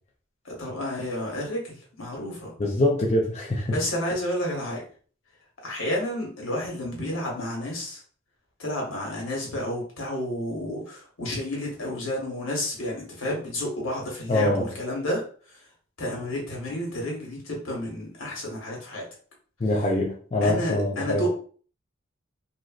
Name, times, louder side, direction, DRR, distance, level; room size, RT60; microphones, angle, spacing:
voice 1, 0.4-2.6 3.7-4.8 5.6-8.0 8.6-15.2 15.5-15.6 16.0-19.1 20.4-21.3, left 1 dB, 80° left, 1.1 m, -31 dB
voice 2, 2.6-3.7 14.3-14.6 19.6-21.3, left 1 dB, 30° left, 0.4 m, -24 dB
3.1 x 2.4 x 2.3 m
head